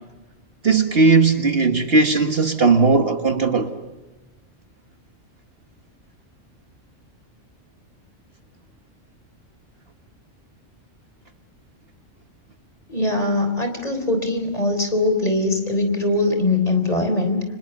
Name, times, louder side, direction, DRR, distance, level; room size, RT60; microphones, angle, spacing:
voice 1, 0.6-3.7, right 4 dB, 50° right, 1.7 m, -17 dB
voice 2, 12.9-17.4, left 2 dB, 30° left, 3.9 m, -21 dB
29.5 x 26.0 x 7.1 m
omnidirectional pair, 1.3 m